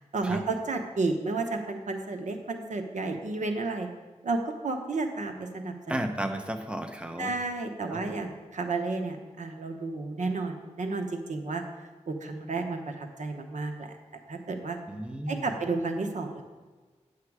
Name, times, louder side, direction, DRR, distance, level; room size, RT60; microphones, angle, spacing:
voice 1, 0.1-3.9 4.2-6.0 7.2-11.6 12.1-13.9 14.3-14.8 15.3-16.4, right 3 dB, 80° right, 5 dB, 0.9 m, -32 dB
voice 2, 5.9-7.3 7.9-8.0 14.9-15.5, right 1 dB, 10° right, 6 dB, 0.8 m, -33 dB
9.6 x 6.7 x 4.8 m, 1.3 s
wide cardioid pair, 70°, 12 cm